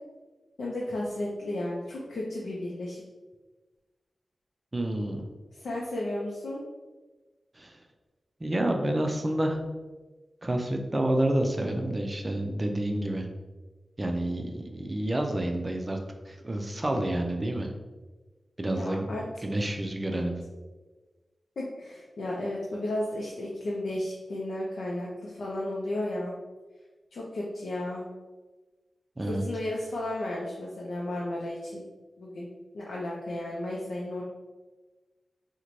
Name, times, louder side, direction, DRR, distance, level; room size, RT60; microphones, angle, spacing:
voice 1, 0.6-3.0 5.5-6.6 18.7-19.2 20.1-20.3 21.6-26.3 27.1-28.0 29.3-31.8 32.2-32.5 32.7-34.2, left 1 dB, 90° left, -4 dB, 0.5 m, -33 dB
voice 2, 4.7-5.3 7.6-7.8 8.4-9.6 10.4-13.3 14.0-16.0 16.3-17.7 18.6-20.4 29.2-29.4, right 1 dB, 25° right, 3 dB, 0.4 m, -29 dB
3.0 x 2.1 x 3.8 m, 1.3 s
wide cardioid pair, 140°, 0 cm